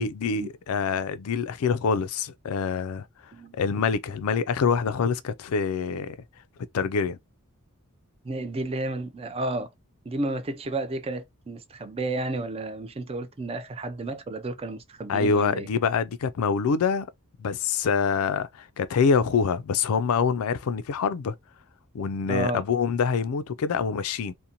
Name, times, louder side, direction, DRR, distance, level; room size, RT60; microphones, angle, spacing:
voice 1, 0.0-6.2 6.7-7.2 15.1-17.1 17.4-21.4 21.9-24.3, left 5 dB, 70° left, 0.4 m, -25 dB
voice 2, 8.2-9.7 10.1-15.7 22.3-22.6, right 2 dB, 25° right, 0.4 m, -32 dB
2.5 x 2.1 x 2.8 m
head